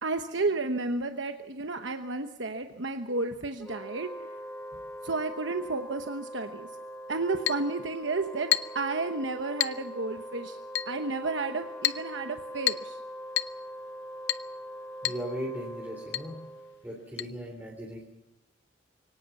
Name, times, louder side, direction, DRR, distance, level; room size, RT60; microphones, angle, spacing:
voice 1, 0.0-4.1 5.0-6.7 7.1-10.6 10.9-13.0, right 3 dB, 70° right, 6 dB, 1.1 m, -32 dB
Wind instrument woodwind instrument, 3.6-17.0, equal, 15° left, 1.1 m, -42 dB
Chink clink, 7.5-7.7 8.5-8.8 9.6-9.8 10.8-11.0 11.8-12.1 12.7-12.9 13.4-13.6 14.3-14.5 15.0-15.3 15.5-15.6 16.1-16.3 17.2-17.3, left 12 dB, 65° left, 0.7 m, -29 dB
voice 2, 15.0-16.3 16.8-18.1, equal, 10° right, -1 dB, 3.1 m, -37 dB
24.0 x 18.0 x 7.1 m, 0.89 s
head